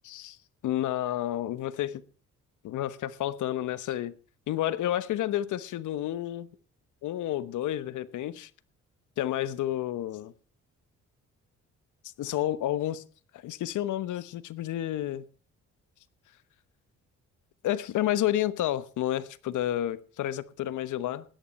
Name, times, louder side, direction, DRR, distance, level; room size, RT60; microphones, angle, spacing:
voice 1, 0.0-0.4 0.6-2.0 2.6-4.1 4.5-6.5 7.0-8.5 9.2-10.3 12.2-13.0 13.4-15.2 17.6-21.2, left 12 dB, 80° left, 1.2 m, -30 dB
16.5 x 11.0 x 4.3 m
cardioid pair, 90°, 30 cm